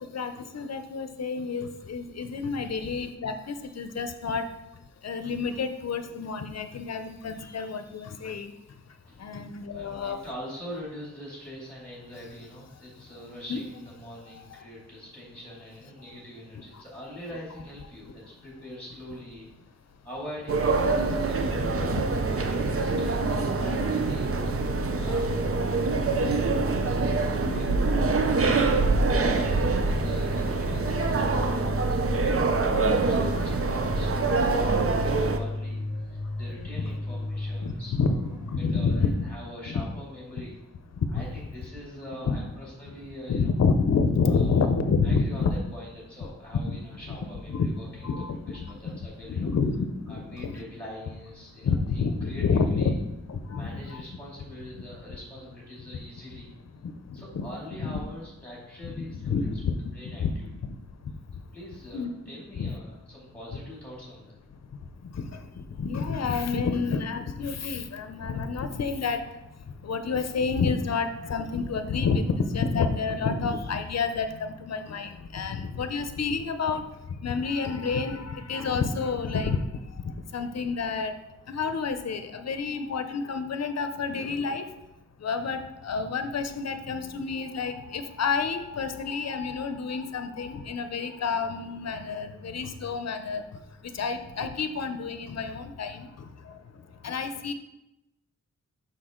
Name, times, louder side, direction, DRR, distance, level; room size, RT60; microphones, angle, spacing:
voice 1, 0.1-4.4 5.0-8.5 9.2-10.2 13.5-13.6 14.3-14.5 21.1-21.2 21.6-22.0 27.5-27.9 33.1-33.2 36.7-37.0 37.6-38.2 38.5-39.3 39.7-39.8 41.0-41.3 42.2-42.4 43.3-45.5 46.6-46.8 47.1-47.2 47.5-47.7 48.0-48.6 48.8-48.9 49.3-50.5 51.6-52.9 53.3-54.0 56.8-57.5 58.8-59.9 60.2-60.3 60.6-60.8 61.9-62.2 62.6-62.7 65.1-69.2 69.8-76.8 77.2-79.6 80.0-81.2 81.5-84.7 85.2-93.4 93.9-96.1 96.5-96.6 97.0-97.5, left 5 dB, 60° left, 9 dB, 0.6 m, -29 dB
voice 2, 9.7-19.5 20.0-21.7 22.0-28.5 29.1-40.5 41.1-43.5 44.3-44.7 45.0-48.1 48.5-49.5 50.1-53.0 53.6-56.5 57.1-59.5 59.9-60.5 61.5-64.4, equal, 5° left, -5 dB, 2.5 m, -44 dB
sound 1, 20.5-35.4, right 3 dB, 50° right, 0.6 m, -25 dB
sound 2, 21.2-39.1, left 2 dB, 85° right, 2.5 m, -36 dB
6.1 x 5.2 x 3.7 m, 0.91 s
wide cardioid pair, 70°, 29 cm